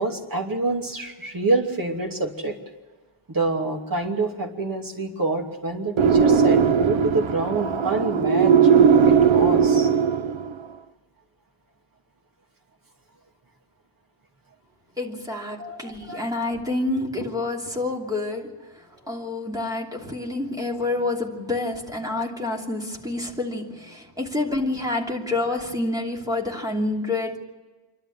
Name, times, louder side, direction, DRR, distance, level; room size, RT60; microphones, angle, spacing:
voice 1, 0.0-2.6 3.3-8.6 9.0-9.9 15.6-16.3, right 3 dB, 45° right, 1 dB, 2.8 m, -27 dB
sound 1, 6.0-10.6, right 6 dB, 85° right, 0.8 m, -18 dB
voice 2, 15.0-18.5 19.0-27.4, left 2 dB, 10° right, -1 dB, 2.9 m, -28 dB
26.5 x 12.5 x 9.4 m, 1.3 s
wide cardioid pair, 140°, 45 cm